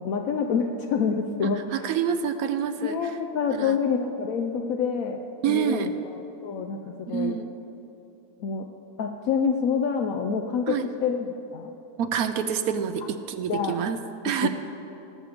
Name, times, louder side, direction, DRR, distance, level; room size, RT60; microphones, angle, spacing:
voice 1, 0.0-1.9 2.8-5.2 5.5-7.4 8.4-8.7 9.0-11.7 13.5-13.8 14.4-14.5, left 6 dB, 70° left, 3 dB, 1.0 m, -27 dB
voice 2, 1.7-3.1 3.5-3.8 5.4-5.9 7.1-7.5 10.7-10.8 12.0-14.0 14.2-14.5, right 8 dB, 70° right, 9 dB, 1.0 m, -27 dB
18.5 x 7.1 x 5.0 m, 3.0 s
omnidirectional pair, 1.7 m